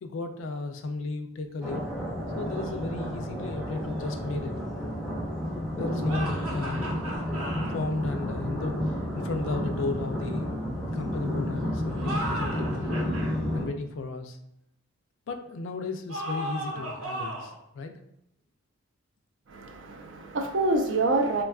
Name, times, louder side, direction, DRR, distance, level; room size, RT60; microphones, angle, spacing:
voice 1, 0.0-1.9 2.4-4.5 5.7-7.0 7.4-10.5 10.9-13.0 13.5-14.4 15.3-18.0, left 3 dB, 60° left, 6 dB, 0.3 m, -34 dB
sound 1, 1.6-13.7, equal, ahead, 0.4 m, -31 dB
sound 2, 6.1-7.8 11.9-13.3 16.1-17.6, right 1 dB, 90° right, 0.8 m, -35 dB
voice 2, 19.5-21.4, right 2 dB, 60° right, 4 dB, 0.4 m, -26 dB
3.4 x 2.2 x 2.3 m, 0.78 s
head